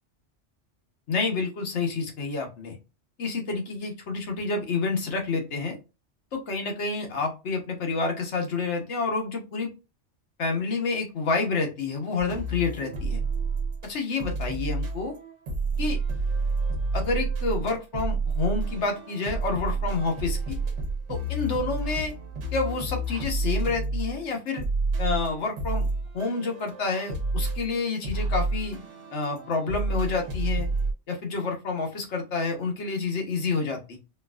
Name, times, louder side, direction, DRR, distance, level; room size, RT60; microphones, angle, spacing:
voice 1, 1.1-2.8 3.2-5.8 6.3-9.7 10.4-13.2 13.8-15.1 15.8-16.0 16.9-20.6 21.1-22.1 22.5-24.6 25.0-25.9 26.1-28.8 29.1-30.7 31.1-34.0, left 4 dB, 75° left, 2 dB, 1.2 m, -29 dB
sound 1, 12.2-13.9 14.2-30.9, right 3 dB, 85° right, 1.1 m, -29 dB
4.4 x 2.5 x 2.3 m, 0.29 s
omnidirectional pair, 1.2 m